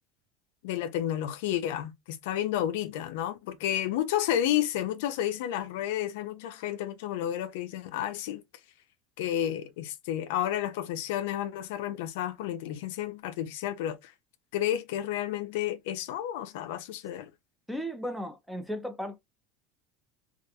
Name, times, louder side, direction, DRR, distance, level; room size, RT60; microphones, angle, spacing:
voice 1, 0.6-8.4 9.2-14.1 14.5-17.3, left 11 dB, 75° left, 0.4 m, -31 dB
voice 2, 17.7-19.2, equal, ahead, 0.4 m, -35 dB
2.3 x 2.2 x 2.7 m
cardioid pair, 180°, 0 cm